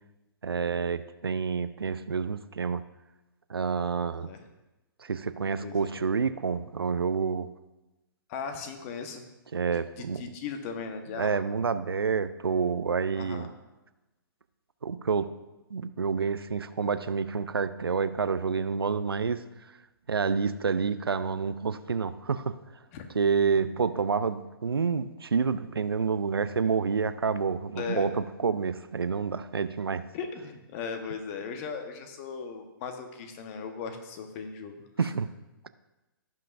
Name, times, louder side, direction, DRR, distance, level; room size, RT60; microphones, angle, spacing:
voice 1, 0.4-2.8 3.5-4.3 5.0-7.5 9.5-10.2 11.2-13.5 14.8-15.3 15.7-19.4 20.1-22.6 23.1-30.0 35.0-35.3, right 5 dB, 90° right, 13 dB, 0.5 m, -28 dB
voice 2, 5.6-5.9 8.3-9.2 9.7-11.4 13.1-13.5 22.9-23.1 27.7-28.1 30.1-35.1, left 5 dB, 35° left, 6 dB, 1.2 m, -38 dB
16.5 x 5.7 x 2.6 m, 1.1 s
hypercardioid pair, 130°, 12 cm